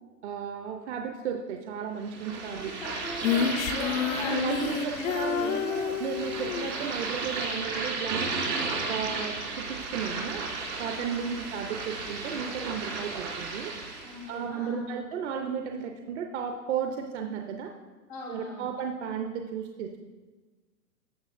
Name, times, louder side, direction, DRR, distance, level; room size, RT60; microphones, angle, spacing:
voice 1, 0.2-2.7 4.2-8.3 8.9-10.4 10.8-13.7 14.3-17.7 18.3-20.0, right 7 dB, 45° right, 3 dB, 0.7 m, -34 dB
sound 1, 2.0-14.3, right 3 dB, 75° right, 2.9 m, -34 dB
voice 2, 2.6-5.7 8.9-9.1 10.9-11.4 14.0-15.0 18.1-18.7, left 2 dB, 5° left, -6 dB, 0.4 m, -39 dB
Female singing, 3.2-6.7, left 8 dB, 55° left, 0.6 m, -29 dB
14.5 x 6.8 x 2.5 m, 1.3 s
hypercardioid pair, 140°, 48 cm